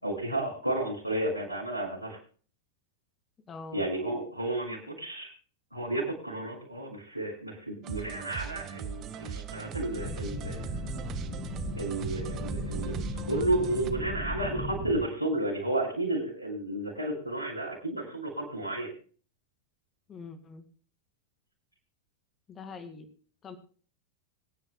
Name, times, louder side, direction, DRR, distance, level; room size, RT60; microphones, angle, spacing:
voice 1, 0.0-2.2 3.7-5.3 5.7-10.7 11.7-18.9, right 1 dB, 85° left, 0 dB, 6.1 m, -32 dB
voice 2, 3.5-3.8 20.1-20.6 22.5-23.1 23.4-23.6, left 4 dB, 25° left, 9 dB, 2.1 m, -43 dB
sound 1, 7.8-13.9, right 9 dB, 35° right, 1.3 m, -40 dB
sound 2, 9.9-15.0, left 1 dB, 40° left, 6.6 m, -36 dB
26.0 x 10.0 x 2.3 m, 0.41 s
figure-of-eight pair, 90°, 0 cm